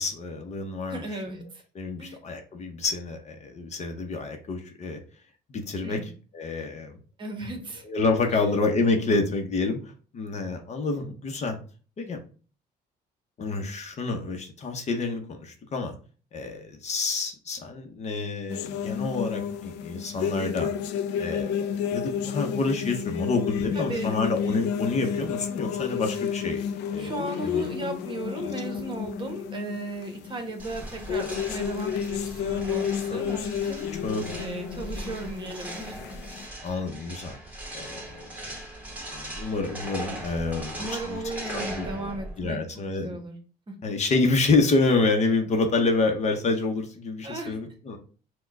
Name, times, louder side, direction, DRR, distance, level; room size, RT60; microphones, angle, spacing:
voice 1, 0.0-1.0 1.7-5.0 5.5-6.0 6.3-7.0 7.8-11.6 12.0-12.2 13.4-16.0 16.3-20.7 21.2-27.1 27.4-27.6 28.4-28.5 33.1-33.5 34.0-34.5 36.6-37.4 37.7-38.3 39.1-41.2 41.5-42.0 42.4-43.2 43.8-48.0, left 3 dB, 40° left, 5 dB, 0.8 m, -28 dB
voice 2, 0.9-1.6 2.0-2.2 5.8-6.1 7.2-7.8 8.3-8.5 23.7-24.5 27.0-33.8 34.4-36.1 40.8-43.3 43.7-43.8 47.2-47.6, right 2 dB, 30° right, 4 dB, 1.1 m, -36 dB
sound 1, 18.5-36.5, left 8 dB, 90° left, 0.4 m, -31 dB
sound 2, 30.6-42.5, right 1 dB, 10° right, 1.6 m, -39 dB
4.3 x 2.3 x 4.5 m, 0.38 s
cardioid pair, 110°, 17 cm